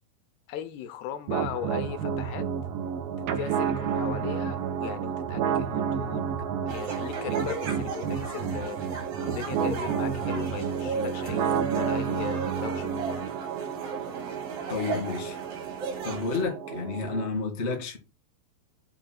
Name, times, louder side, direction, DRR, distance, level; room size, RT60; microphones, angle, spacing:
voice 1, 0.5-2.5 3.2-6.2 6.6-8.8 9.2-13.3, left 9 dB, 80° left, 2.6 m, -38 dB
sound 1, 1.3-17.3, right 7 dB, 80° right, 2.0 m, -30 dB
sound 2, 6.7-16.4, right 3 dB, 65° right, 1.5 m, -37 dB
voice 2, 14.7-15.4 16.0-18.0, left 4 dB, 45° left, 0.8 m, -30 dB
6.7 x 2.8 x 5.8 m
omnidirectional pair, 4.8 m